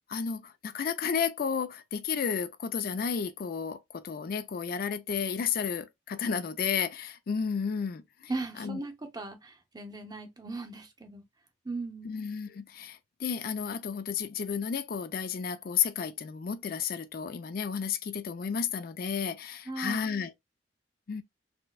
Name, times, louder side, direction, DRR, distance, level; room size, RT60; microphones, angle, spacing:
voice 1, 0.1-8.3 8.6-8.8 12.0-20.3 21.1-21.2, left 6 dB, 55° left, 0.4 m, -32 dB
voice 2, 8.3-11.2 11.6-12.1 19.7-20.1, right 3 dB, 20° right, 0.7 m, -38 dB
4.3 x 2.1 x 2.2 m
head